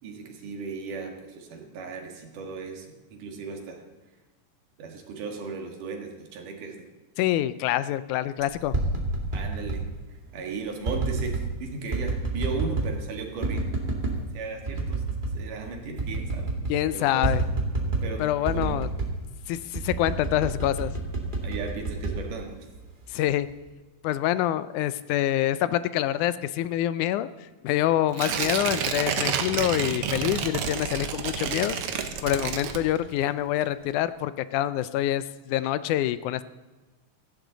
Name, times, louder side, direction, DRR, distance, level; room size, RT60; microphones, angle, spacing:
voice 1, 0.0-3.8 4.8-6.9 9.3-9.8 10.3-13.7 14.3-15.0 15.3-16.5 16.9-17.3 18.0-18.2 18.5-18.8 21.4-22.6, right 4 dB, 85° right, 2 dB, 3.4 m, -36 dB
voice 2, 7.2-8.8 16.7-17.4 18.2-18.9 19.5-20.9 23.1-23.5 24.0-27.3 27.6-36.4, left 13 dB, 80° left, 15 dB, 2.0 m, -26 dB
sound 1, 8.5-9.8 10.8-11.5 11.9-13.0 13.4-14.2 14.7-15.4 15.7-15.8 16.0-16.8 17.2-18.1 18.5-19.2 19.7-22.8 23.3-23.7, right 3 dB, 20° right, 1.8 m, -28 dB
Tearing, 28.1-33.3 33.6-33.7, right 7 dB, 65° right, 1.5 m, -29 dB
16.5 x 15.5 x 4.0 m, 1.2 s
omnidirectional pair, 3.6 m